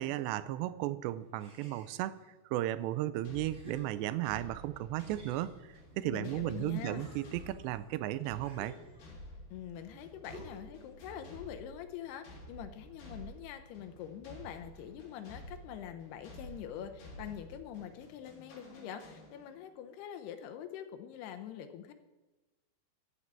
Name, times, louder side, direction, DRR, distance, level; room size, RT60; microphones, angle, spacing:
voice 1, 0.0-2.2 2.5-8.8, right 14 dB, 85° right, 15 dB, 2.7 m, -35 dB
sound 1, 1.4-2.2 2.9-3.0 3.5-4.5 5.0-6.4 6.7-9.3 10.3-10.8, equal, 25° right, 2.0 m, -55 dB
sound 2, 3.2-19.7, equal, 60° left, 5.0 m, -52 dB
voice 2, 6.1-7.1 9.5-21.9, left 10 dB, 75° left, 7 dB, 2.7 m, -44 dB
13.5 x 6.1 x 8.9 m, 1.1 s
omnidirectional pair, 5.0 m